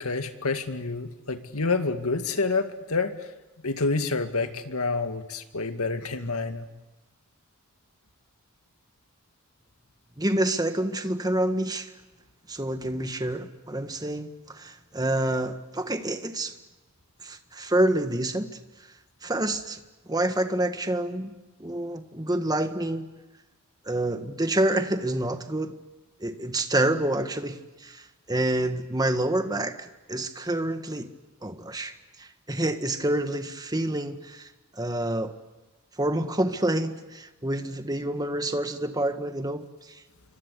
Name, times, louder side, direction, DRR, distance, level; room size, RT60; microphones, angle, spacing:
voice 1, 0.0-3.3 3.6-6.7, left 3 dB, 85° left, 8 dB, 2.2 m, -28 dB
voice 2, 10.2-11.9 12.5-16.5 17.2-18.5 19.2-19.8 20.1-23.1 23.8-25.7 26.2-31.1 31.4-35.3 36.0-40.0, right 1 dB, 20° right, 8 dB, 1.6 m, -28 dB
28.0 x 24.5 x 8.3 m, 1.1 s
head